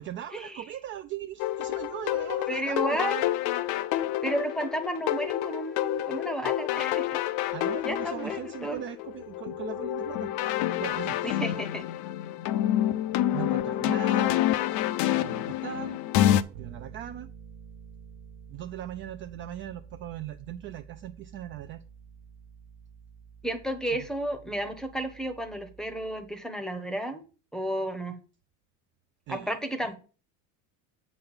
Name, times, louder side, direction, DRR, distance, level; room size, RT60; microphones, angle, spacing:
voice 1, 0.0-3.2 7.5-11.6 13.3-14.5 15.1-16.0 16.5-17.3 18.5-21.8 23.9-24.1 29.3-29.6, right 11 dB, 35° right, 0.4 m, -39 dB
sound 1, 1.4-16.4, left 12 dB, 50° left, 0.6 m, -28 dB
voice 2, 2.5-3.2 4.2-7.2 7.8-8.8 11.2-11.8 23.4-27.2 27.5-28.2 29.3-30.0, right 1 dB, ahead, 0.8 m, -32 dB
Bass guitar, 16.5-26.4, right 7 dB, 55° right, 1.4 m, -49 dB
7.7 x 4.1 x 6.9 m
cardioid pair, 155°, 38 cm